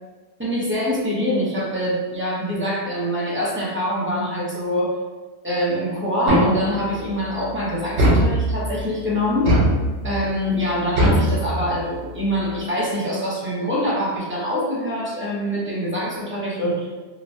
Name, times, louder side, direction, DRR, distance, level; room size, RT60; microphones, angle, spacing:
voice 1, 0.4-4.9 5.4-9.6 10.0-16.9, equal, 15° right, -7 dB, 0.6 m, -24 dB
sound 1, 6.3-7.0 8.0-8.8 9.5-10.3 11.0-12.0, equal, 70° right, 1.1 m, -20 dB
3.0 x 2.1 x 2.6 m, 1.3 s
omnidirectional pair, 1.2 m